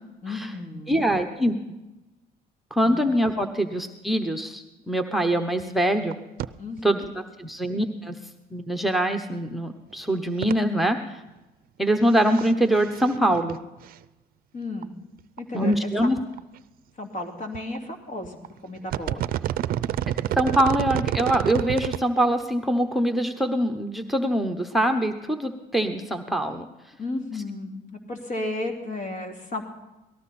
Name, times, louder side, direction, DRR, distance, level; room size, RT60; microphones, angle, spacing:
voice 1, 0.2-1.1 2.8-3.0 6.6-7.1 14.5-14.9 15.4-15.7 16.0-16.1 17.0-19.2 27.0-29.6, left 2 dB, 50° left, 2 dB, 2.8 m, -33 dB
voice 2, 0.9-1.6 2.7-6.2 6.8-8.2 8.5-11.2 11.8-13.6 15.5-16.2 20.3-26.7, right 1 dB, ahead, 4 dB, 0.9 m, -24 dB
sound 1, 5.6-5.7 5.9-6.1 6.4-6.5 6.8-6.9 9.1-9.2 10.4-10.5 12.1-12.5 12.8-13.6 13.9-14.0 14.8-14.9 15.4-15.5 15.7-15.8 16.2-16.6 17.5-17.8 18.2-18.5 18.8-22.0 22.4-22.5, right 12 dB, 60° right, 0.5 m, -28 dB
18.5 x 14.0 x 4.3 m, 1.0 s
cardioid pair, 110°, 17 cm